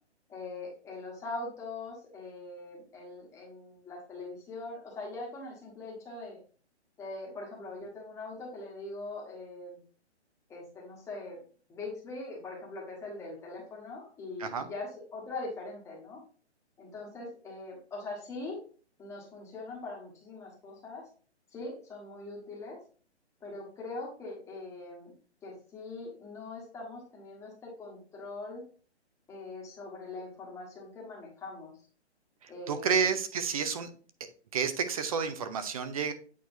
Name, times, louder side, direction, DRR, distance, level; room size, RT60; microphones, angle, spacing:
voice 1, 0.3-6.4 7.0-9.8 10.5-11.4 11.7-16.2 16.8-18.6 19.0-21.0 21.5-22.8 23.4-25.1 25.4-28.6 29.3-31.7 32.5-33.1, left 2 dB, 10° left, -3 dB, 1.3 m, -42 dB
voice 2, 32.4-33.9 34.5-36.1, right 6 dB, 30° right, 10 dB, 0.6 m, -30 dB
8.3 x 4.4 x 2.7 m, 0.42 s
hypercardioid pair, 155°, 34 cm